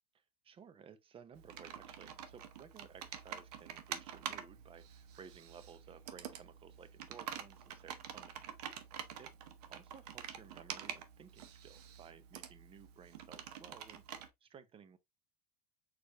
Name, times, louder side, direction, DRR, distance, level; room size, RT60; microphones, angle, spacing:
voice 1, 0.4-8.8 9.2-9.3 9.7-14.0 14.4-15.0, right 7 dB, 30° right, 0.7 m, -57 dB
Computer keyboard, 1.4-14.3, right 9 dB, 80° right, 0.9 m, -47 dB
4.5 x 4.1 x 2.8 m
supercardioid pair, 110°, 20 cm